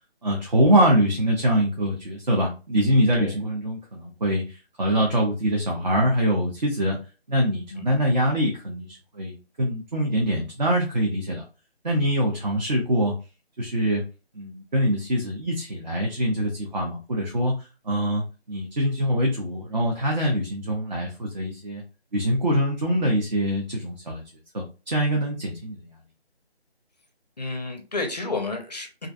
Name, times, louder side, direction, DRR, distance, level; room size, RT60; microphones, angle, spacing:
voice 1, 0.2-7.0 7.3-11.4 11.8-13.1 13.6-14.0 14.3-18.2 18.5-21.8 22.1-24.2 24.5-25.9, equal, 45° right, 0 dB, 0.5 m, -24 dB
voice 2, 27.4-29.1, left 3 dB, 40° left, 4 dB, 0.5 m, -31 dB
2.4 x 2.1 x 2.5 m, 0.32 s
figure-of-eight pair, 170°, 32 cm